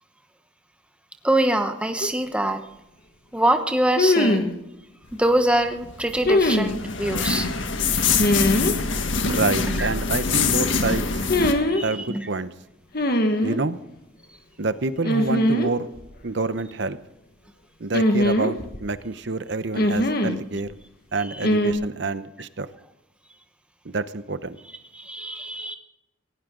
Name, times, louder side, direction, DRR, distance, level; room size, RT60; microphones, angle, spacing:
voice 1, 1.2-2.6 3.3-4.5 5.1-7.5 9.8-9.9 11.7-12.3 21.2-21.5 24.9-25.7, right 1 dB, 5° right, 6 dB, 1.0 m, -24 dB
sound 1, 2.0-2.1 4.0-4.5 6.2-6.7 8.2-8.7 11.2-11.8 12.9-13.6 15.0-15.7 16.0-16.1 17.9-18.9 19.8-20.4 21.4-21.7, left 1 dB, 50° left, 1.6 m, -21 dB
sound 2, 5.6-11.5, left 4 dB, 70° left, 1.7 m, -24 dB
voice 2, 9.2-11.1 11.8-12.5 13.4-13.8 14.6-15.9 16.2-17.0 17.8-20.7 21.1-22.7 23.8-24.6, right 3 dB, 60° right, 13 dB, 0.9 m, -27 dB
19.0 x 16.5 x 3.9 m, 0.92 s
head